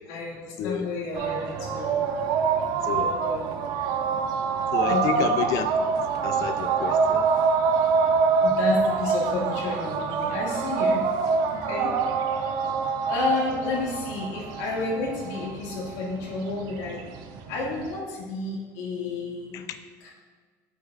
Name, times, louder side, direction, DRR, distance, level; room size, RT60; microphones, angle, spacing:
voice 1, 0.1-2.0 3.0-3.9 4.9-5.2 8.4-11.1 11.5-11.9 13.1-17.0 17.5-19.6 20.0-20.1, left 3 dB, 85° left, -3 dB, 2.1 m, -31 dB
voice 2, 0.6-0.9 2.8-3.1 4.7-5.9 6.2-7.3 19.5-19.6, left 8 dB, 50° left, 9 dB, 0.5 m, -30 dB
sound 1, 1.1-18.0, right 5 dB, 55° right, 0.7 m, -26 dB
8.9 x 6.3 x 2.5 m, 1.5 s
cardioid pair, 165°, 8 cm